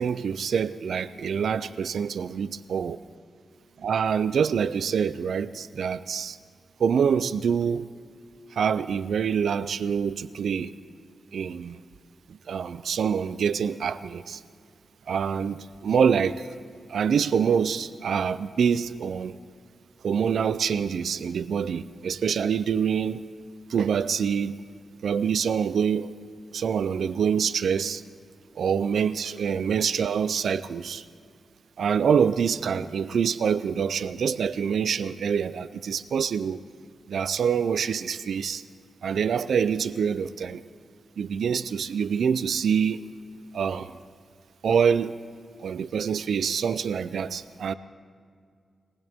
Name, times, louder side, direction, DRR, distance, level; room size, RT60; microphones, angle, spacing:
voice 1, 0.0-3.0 3.8-6.4 6.8-7.9 8.5-10.7 11.3-11.8 12.3-14.4 15.1-16.5 16.9-19.4 20.0-23.2 23.7-24.6 25.0-26.1 26.5-28.0 28.6-31.0 31.8-36.6 37.1-38.6 39.0-40.6 41.2-43.0 43.5-44.0 44.6-45.2 45.6-47.7, right 7 dB, 75° right, 0.4 m, -26 dB
21.5 x 18.5 x 3.5 m
wide cardioid pair, 145°, 0 cm